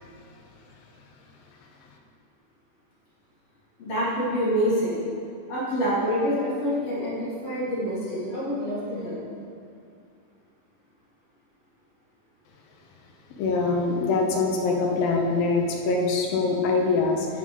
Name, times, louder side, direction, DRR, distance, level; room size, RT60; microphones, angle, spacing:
voice 1, 3.8-5.0 5.5-9.2, equal, 45° left, -8 dB, 3.2 m, -26 dB
voice 2, 13.4-17.3, left 3 dB, 80° left, 1 dB, 2.8 m, -23 dB
12.0 x 5.6 x 5.3 m, 2.3 s
omnidirectional pair, 4.1 m